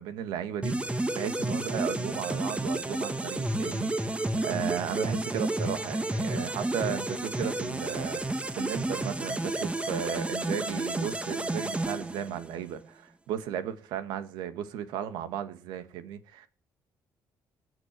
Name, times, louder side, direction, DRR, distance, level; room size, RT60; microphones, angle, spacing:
voice 1, 0.0-16.5, right 9 dB, 80° right, 1.6 m, -35 dB
sound 1, 0.6-12.7, right 1 dB, 15° right, 1.4 m, -31 dB
18.0 x 6.3 x 7.4 m
supercardioid pair, 65°, 8 cm